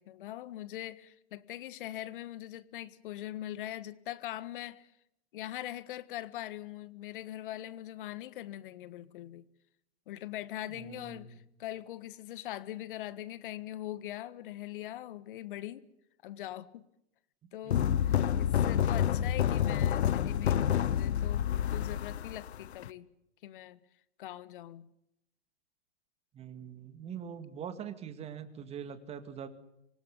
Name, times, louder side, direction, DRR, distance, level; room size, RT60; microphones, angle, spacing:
voice 1, 0.0-4.9 5.3-9.4 10.1-15.9 16.2-16.9 17.5-23.1 23.4-23.8 24.2-24.9, left 13 dB, 50° left, 1.5 m, -42 dB
voice 2, 10.8-11.4 17.6-18.2 26.3-29.5, right 8 dB, 20° right, 2.1 m, -43 dB
sound 1, 17.7-22.9, left 9 dB, 70° left, 1.1 m, -28 dB
25.5 x 18.5 x 9.5 m
hypercardioid pair, 135°, 33 cm